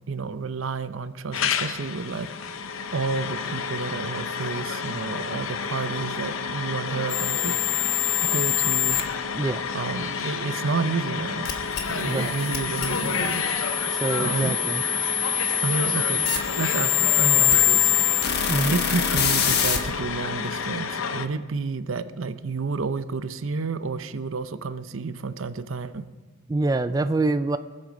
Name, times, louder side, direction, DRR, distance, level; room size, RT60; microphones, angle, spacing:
voice 1, 0.1-2.6 2.9-7.5 8.3-9.0 9.7-11.5 11.9-13.5 14.2-14.6 15.6-17.9 18.7-26.0, right 4 dB, 70° right, 12 dB, 0.7 m, -30 dB
sound 1, 1.3-21.3, left 6 dB, 80° left, 0.7 m, -30 dB
sound 2, 7.1-9.0 11.5-19.8, left 8 dB, 55° left, 1.3 m, -24 dB
voice 2, 14.0-14.8 18.5-18.7 26.5-27.6, right 2 dB, 20° right, 10 dB, 0.3 m, -25 dB
23.0 x 7.8 x 5.2 m, 1.4 s
head